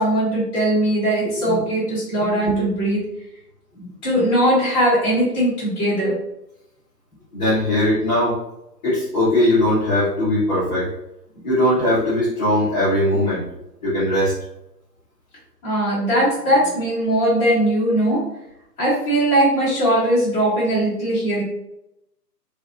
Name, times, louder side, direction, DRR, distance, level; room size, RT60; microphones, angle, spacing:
voice 1, 0.0-3.0 3.7-6.1 15.6-18.3 18.8-21.4, right 1 dB, 10° left, -12 dB, 1.1 m, -20 dB
voice 2, 7.3-8.4 8.8-10.9 11.4-13.5 13.8-14.3, left 1 dB, 25° left, -12 dB, 0.9 m, -19 dB
2.6 x 2.5 x 2.5 m, 0.85 s
hypercardioid pair, 145°, 50 cm